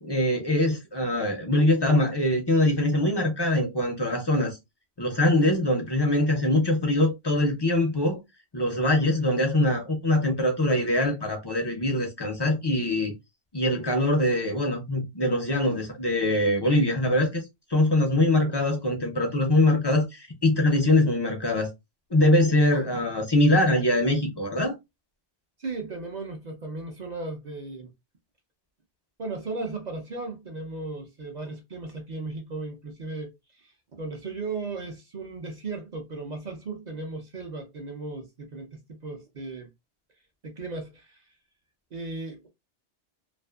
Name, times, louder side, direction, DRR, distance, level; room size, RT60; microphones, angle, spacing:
voice 1, 0.0-4.6 5.0-8.2 8.5-13.1 13.5-17.4 17.7-21.7 22.1-24.7, left 1 dB, 40° left, 0.3 m, -23 dB
voice 2, 22.7-23.1 25.6-27.9 29.2-33.7 34.0-39.7 40.4-41.2 41.9-42.5, right 3 dB, 50° right, 0.6 m, -36 dB
2.5 x 2.4 x 2.2 m
omnidirectional pair, 1.2 m